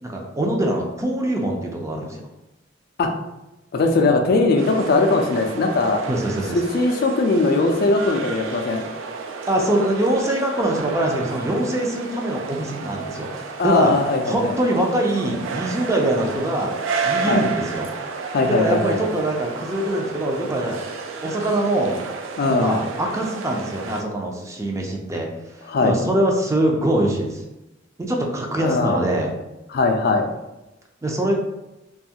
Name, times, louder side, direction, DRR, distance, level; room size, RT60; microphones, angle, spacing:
voice 1, 0.0-2.2 6.1-6.6 9.5-13.3 13.6-13.9 14.2-16.7 17.0-17.9 18.4-20.8 21.2-22.0 22.6-25.3 25.8-27.4 28.1-29.3 31.0-31.3, right 1 dB, 15° right, 0 dB, 0.4 m, -23 dB
voice 2, 3.7-6.0 6.5-8.8 13.6-14.6 17.3-17.4 18.3-19.0 22.4-22.8 25.7-26.0 28.6-29.0 29.7-30.3, left 3 dB, 55° left, 4 dB, 0.4 m, -20 dB
sound 1, 4.6-24.0, right 4 dB, 85° right, 0.3 m, -32 dB
2.5 x 2.3 x 2.7 m, 0.97 s
head